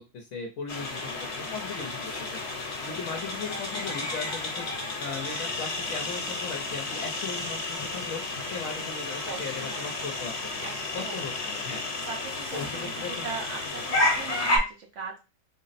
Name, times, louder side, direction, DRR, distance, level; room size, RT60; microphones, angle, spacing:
voice 1, 0.0-2.4 2.8-4.7 5.0-10.7 10.9-11.8 12.5-13.3, left 5 dB, 75° left, 2 dB, 1.1 m, -38 dB
sound 1, 0.7-14.6, left 2 dB, 55° left, 1.2 m, -32 dB
voice 2, 9.3-10.0 10.6-11.2 12.1-15.2, right 5 dB, 65° right, 1 dB, 1.0 m, -40 dB
3.8 x 2.0 x 4.0 m, 0.28 s
omnidirectional pair, 1.4 m